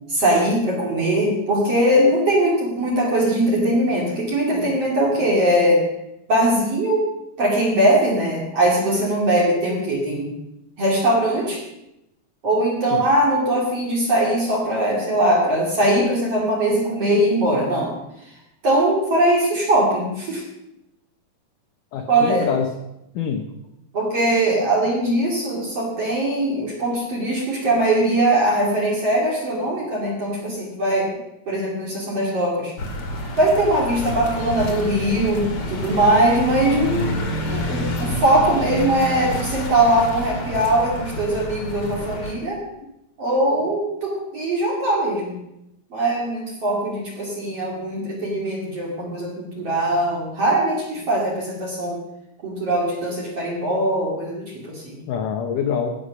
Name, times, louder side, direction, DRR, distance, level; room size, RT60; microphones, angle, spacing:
voice 1, 0.1-5.8 6.3-7.0 7.4-10.3 10.8-11.6 12.4-17.9 18.6-20.4 22.1-22.5 23.9-31.1 31.5-32.7 33.4-37.1 37.5-42.6 43.2-45.4 45.9-52.0 52.4-55.0, right 1 dB, 40° right, -3 dB, 3.1 m, -21 dB
voice 2, 21.9-22.7 23.2-23.5 55.1-56.0, left 7 dB, 70° left, 3 dB, 2.2 m, -25 dB
sound 1, 32.8-42.3, left 1 dB, 40° left, 2.5 m, -28 dB
17.0 x 7.1 x 6.3 m, 0.87 s
omnidirectional pair, 4.6 m